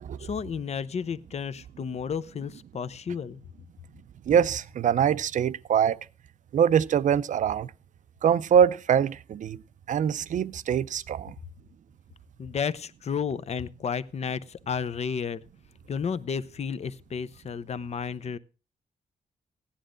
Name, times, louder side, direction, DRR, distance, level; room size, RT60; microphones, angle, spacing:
voice 1, 0.2-3.4 12.4-15.4 15.9-18.4, left 6 dB, 50° left, 0.7 m, -32 dB
voice 2, 4.3-6.0 6.5-7.7 8.2-9.6 9.9-11.3, right 8 dB, 60° right, 0.5 m, -23 dB
15.5 x 10.0 x 3.8 m
cardioid pair, 110°, 14 cm